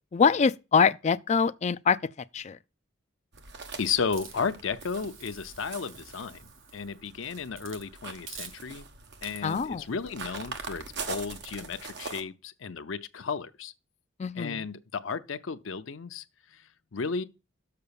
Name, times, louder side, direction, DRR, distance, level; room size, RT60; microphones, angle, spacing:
voice 1, 0.1-2.0 2.3-2.6 9.4-9.8 14.2-14.6, left 6 dB, 35° left, 0.3 m, -24 dB
sound 1, 3.3-12.2, right 4 dB, 60° right, 1.0 m, -43 dB
voice 2, 3.8-6.4 6.7-8.9 9.2-13.7 14.3-17.2, left 5 dB, 75° left, 0.6 m, -34 dB
Hiss, 4.1-7.0 7.5-7.9 8.3-8.9 9.2-9.7 10.4-10.6 11.0-11.5, right 6 dB, 80° right, 1.7 m, -48 dB
6.8 x 4.8 x 6.9 m
head